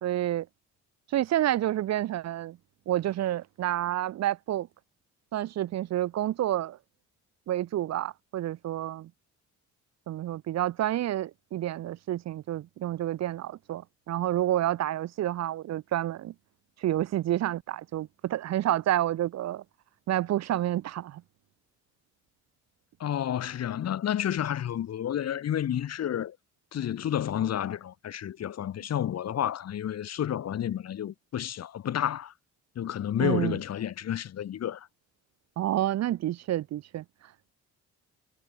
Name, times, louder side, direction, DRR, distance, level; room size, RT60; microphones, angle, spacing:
voice 1, 0.0-0.5 1.1-2.6 2.9-4.7 5.3-6.8 7.5-9.1 10.1-16.3 16.8-19.6 20.1-21.2 33.2-33.6 35.6-37.0, right 13 dB, 60° right, 0.7 m, -29 dB
voice 2, 23.0-26.4 26.7-32.3 32.7-34.9, left 10 dB, 55° left, 1.4 m, -30 dB
cardioid pair, 90°, 30 cm